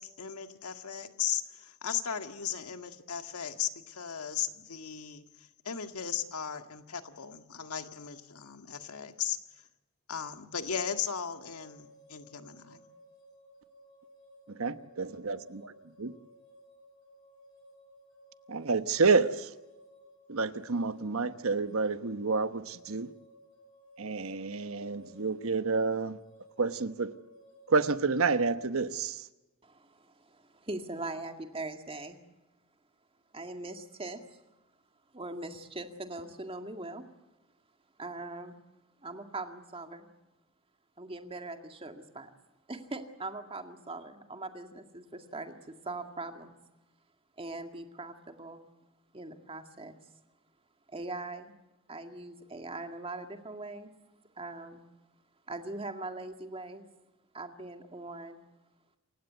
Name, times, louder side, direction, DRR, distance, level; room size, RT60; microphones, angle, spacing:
voice 1, 0.0-5.2 5.7-9.4 10.1-12.8, left 8 dB, 90° left, 1.8 m, -36 dB
sound 1, 10.6-28.4, equal, 70° left, 7.2 m, -58 dB
voice 2, 14.5-15.7 16.0-16.1 18.5-19.5 20.3-23.1 24.0-26.2 26.6-27.1 27.7-29.3, right 4 dB, 65° right, 1.1 m, -29 dB
voice 3, 29.6-32.2 33.3-34.2 35.1-37.0 38.0-38.6 39.0-40.1 41.0-42.3 42.7-46.5 47.4-48.6 49.1-50.0 50.9-51.5 51.9-53.9 54.4-54.8 55.5-56.8 57.3-58.4, right 2 dB, 25° right, 2.1 m, -41 dB
28.0 x 16.5 x 8.0 m
head